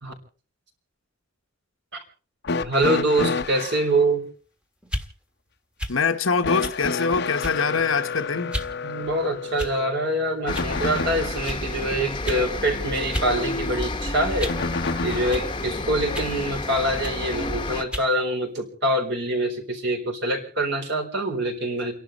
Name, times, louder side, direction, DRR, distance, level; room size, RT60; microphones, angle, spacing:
sound 1, 2.4-3.9 6.4-11.5 14.5-15.5 16.7-16.8 17.9-18.0, left 4 dB, 55° left, 0.8 m, -30 dB
voice 1, 2.6-4.2 8.8-14.5 15.0-21.9, right 1 dB, 60° right, 4.3 m, -25 dB
sound 2, 4.8-5.1 5.8-6.0 6.6-6.8 7.4-7.7 8.5-8.7 9.6-9.9 10.5-10.7 11.4-11.6 12.2-12.5 13.1-13.3 13.7-14.7 15.3-15.5 16.1-16.4 17.0-17.2 17.9-18.1, equal, 5° right, 1.5 m, -32 dB
voice 2, 5.9-8.6, left 5 dB, 75° left, 1.1 m, -24 dB
sound 3, 10.5-17.8, left 2 dB, 25° left, 1.1 m, -30 dB
30.0 x 11.5 x 4.2 m
head